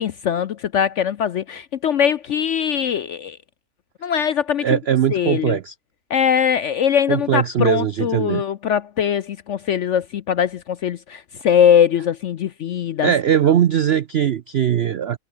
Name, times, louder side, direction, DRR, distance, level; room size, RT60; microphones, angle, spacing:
voice 1, 0.0-3.4 4.0-4.8 5.1-5.6 6.1-13.1, left 8 dB, 65° left, 0.7 m, -21 dB
voice 2, 4.6-5.7 7.1-8.4 13.0-15.2, right 9 dB, 70° right, 0.6 m, -20 dB
omnidirectional pair, 1.8 m